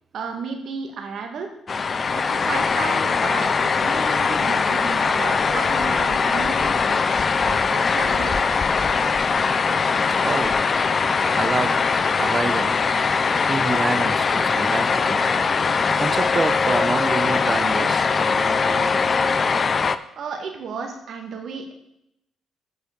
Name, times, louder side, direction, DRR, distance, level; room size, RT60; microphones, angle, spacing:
voice 1, 0.1-1.5 2.1-8.4 20.2-21.7, right 5 dB, 65° right, 3 dB, 1.9 m, -33 dB
sound 1, 1.7-20.0, left 5 dB, 45° left, 0.5 m, -21 dB
voice 2, 10.2-10.6 11.3-11.8 12.2-12.7 13.5-15.3 15.6-19.0, right 4 dB, 35° right, 11 dB, 0.9 m, -27 dB
8.1 x 6.2 x 6.8 m, 0.80 s
supercardioid pair, 55°, 0 cm